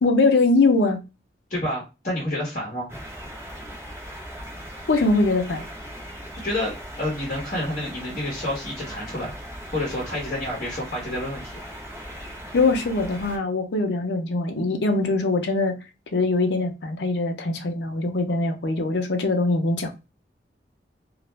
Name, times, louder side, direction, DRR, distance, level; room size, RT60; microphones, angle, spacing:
voice 1, 0.0-1.0 4.9-5.6 12.5-15.8 16.1-19.9, left 3 dB, 75° left, 0.5 m, -22 dB
voice 2, 1.5-3.0 6.4-6.7 7.0-11.5, left 1 dB, 45° left, 0.9 m, -29 dB
sound 1, 2.9-13.4, equal, 15° right, 0.7 m, -39 dB
2.4 x 2.0 x 3.1 m
head